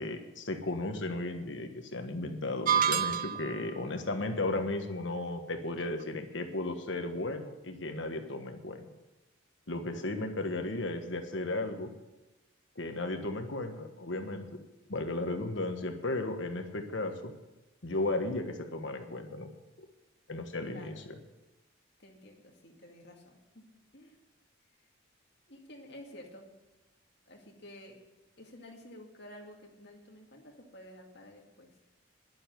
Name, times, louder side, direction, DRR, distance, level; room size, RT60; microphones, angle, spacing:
voice 1, 0.0-8.8 9.7-11.9 12.8-14.5 14.9-17.3 17.8-19.5 20.3-20.9, left 2 dB, 70° left, 6 dB, 1.4 m, -35 dB
sound 1, 2.7-3.6, right 8 dB, 45° right, 0.5 m, -27 dB
voice 2, 20.6-21.0 22.0-23.6 23.9-24.2 25.5-26.5 27.3-28.0 28.4-31.7, left 1 dB, 55° left, 0 dB, 2.3 m, -51 dB
11.0 x 7.8 x 9.2 m, 1.1 s
head